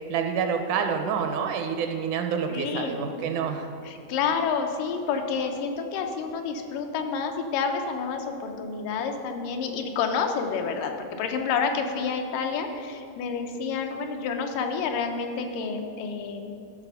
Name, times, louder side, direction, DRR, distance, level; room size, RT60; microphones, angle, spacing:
voice 1, 0.1-3.7, right 6 dB, 80° right, 5 dB, 1.9 m, -28 dB
voice 2, 2.5-3.0 3.9-10.9 11.2-16.5, left 5 dB, 90° left, 4 dB, 2.4 m, -29 dB
12.5 x 4.2 x 5.4 m, 2.7 s
omnidirectional pair, 3.7 m